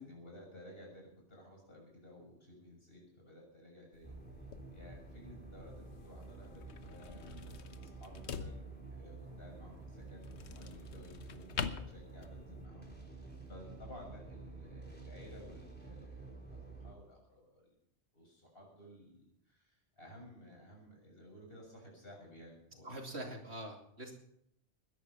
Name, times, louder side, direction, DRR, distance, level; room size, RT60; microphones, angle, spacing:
voice 1, 0.0-17.7 18.1-23.0, left 1 dB, 55° left, -1 dB, 7.0 m, -55 dB
sound 1, 3.9-12.7, left 6 dB, 75° left, 1.2 m, -46 dB
sound 2, 4.0-16.9, right 3 dB, 10° left, 3.8 m, -50 dB
voice 2, 22.8-24.1, right 1 dB, 70° right, 2 dB, 3.0 m, -44 dB
21.0 x 11.0 x 5.7 m, 0.75 s
omnidirectional pair, 1.2 m